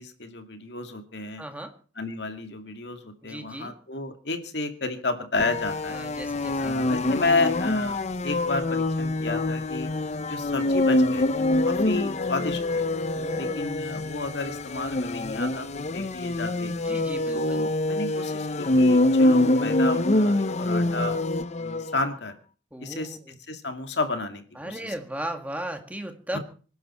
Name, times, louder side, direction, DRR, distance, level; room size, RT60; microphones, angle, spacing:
voice 1, 0.0-1.4 2.0-6.0 6.6-9.9 10.2-12.9 13.3-16.7 17.3-21.2 21.5-22.4 22.8-23.2 23.5-24.8 26.3-26.4, left 3 dB, 65° left, 6 dB, 2.3 m, -31 dB
voice 2, 1.4-1.8 3.2-3.7 5.9-6.8 13.1-13.8 16.6-17.7 22.7-23.4 24.6-26.4, right 1 dB, 10° right, 5 dB, 2.1 m, -37 dB
sound 1, 5.4-22.0, left 2 dB, 40° left, 0.7 m, -25 dB
25.5 x 11.0 x 4.4 m, 0.39 s
head